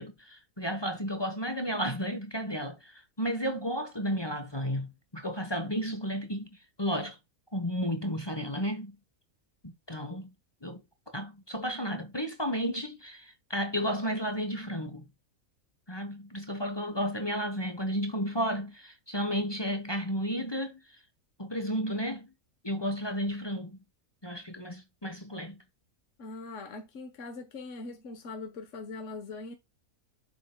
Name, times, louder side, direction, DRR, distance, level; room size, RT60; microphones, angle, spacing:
voice 1, 0.0-6.5 6.8-7.2 7.5-9.0 9.6-10.3 10.6-10.8 11.1-15.1 15.9-20.8 21.4-22.3 22.6-23.8 24.2-25.6, equal, 20° left, 1.1 m, -33 dB
voice 2, 26.2-29.5, left 3 dB, 55° left, 1.5 m, -41 dB
7.7 x 6.8 x 2.3 m
omnidirectional pair, 1.5 m